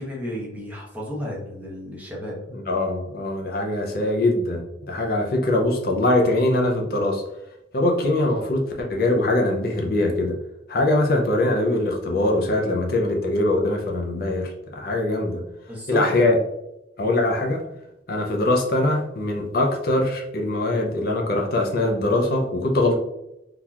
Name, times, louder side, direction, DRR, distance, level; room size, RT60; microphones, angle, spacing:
voice 1, 0.0-2.4 15.7-16.4, equal, 10° right, -4 dB, 0.9 m, -32 dB
voice 2, 2.5-7.2 7.7-10.4 10.7-15.4 15.9-16.4 17.0-17.6 18.1-23.0, left 2 dB, 55° left, 1 dB, 0.5 m, -22 dB
3.8 x 2.8 x 2.3 m, 0.88 s
head